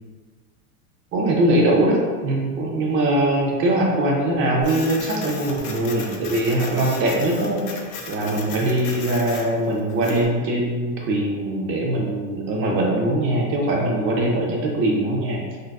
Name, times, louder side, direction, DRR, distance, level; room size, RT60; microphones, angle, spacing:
voice 1, 1.1-7.8 8.1-15.6, right 1 dB, 30° right, -1 dB, 0.3 m, -22 dB
Printer, 4.6-10.3, left 4 dB, 45° left, 0.5 m, -36 dB
3.7 x 2.3 x 2.2 m, 1.5 s
supercardioid pair, 135°, 47 cm